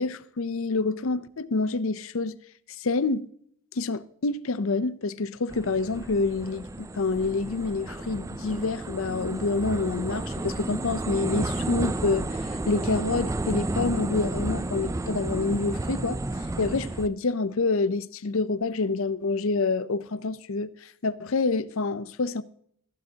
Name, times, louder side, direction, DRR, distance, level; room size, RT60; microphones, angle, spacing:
voice 1, 0.0-2.4 2.8-3.3 3.7-22.4, left 3 dB, 65° left, 0.6 m, -27 dB
sound 1, 5.5-17.1, right 2 dB, 15° right, 0.3 m, -32 dB
14.5 x 12.0 x 2.8 m
head